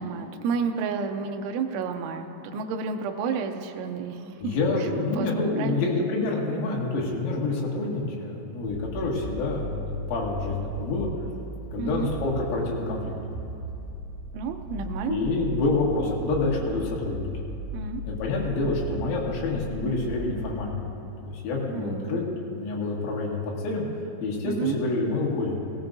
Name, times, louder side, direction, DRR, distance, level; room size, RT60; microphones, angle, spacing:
voice 1, 0.0-4.6 5.2-5.3 5.6-5.9 11.8-12.1 14.3-15.2 17.7-18.0 21.7-22.2 24.4-24.8, right 5 dB, 85° right, 4 dB, 2.9 m, -30 dB
voice 2, 4.4-11.1 11.7-13.1 15.1-17.3 18.1-20.9 21.2-22.2 22.5-23.9 24.2-25.6, left 3 dB, 80° left, -3 dB, 4.5 m, -27 dB
sound 1, 8.7-20.6, right 2 dB, 25° left, 4.1 m, -37 dB
18.0 x 17.5 x 2.6 m, 2.7 s
omnidirectional pair, 5.9 m